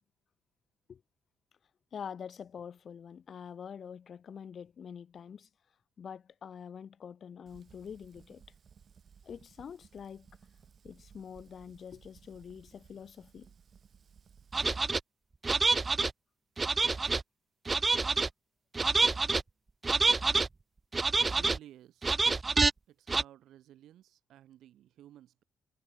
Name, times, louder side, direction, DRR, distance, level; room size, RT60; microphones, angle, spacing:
voice 1, 1.9-5.5 6.0-8.4 9.2-10.3 10.8-13.5, left 7 dB, 50° left, 2.2 m, -45 dB
Fire, 7.5-14.6, right 7 dB, 50° right, 4.8 m, -59 dB
sound 1, 14.5-15.0 15.4-16.1 16.6-17.2 17.7-18.3 18.7-19.4 19.8-20.5 20.9-21.6 22.0-22.7 23.1-23.2, right 3 dB, 25° right, 0.3 m, -27 dB
voice 2, 21.2-22.1 22.9-25.4, right 12 dB, 80° right, 5.3 m, -54 dB
cardioid pair, 90°, 0 cm